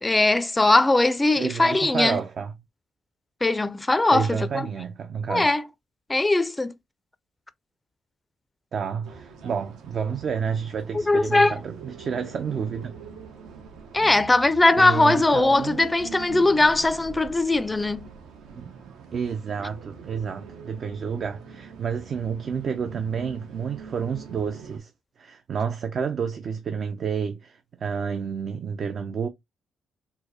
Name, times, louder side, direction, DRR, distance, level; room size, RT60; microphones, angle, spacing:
voice 1, 0.0-2.2 3.4-4.7 5.3-5.6 6.1-6.7 11.1-11.5 13.9-18.1, left 2 dB, 15° left, 0.4 m, -20 dB
voice 2, 1.3-2.5 4.1-5.5 8.7-12.9 14.7-15.8 18.5-24.9 25.2-29.3, right 6 dB, 55° right, 0.4 m, -30 dB
sound 1, 9.0-24.8, right 5 dB, 80° right, 0.8 m, -43 dB
4.5 x 2.1 x 2.7 m
cardioid pair, 90°, 0 cm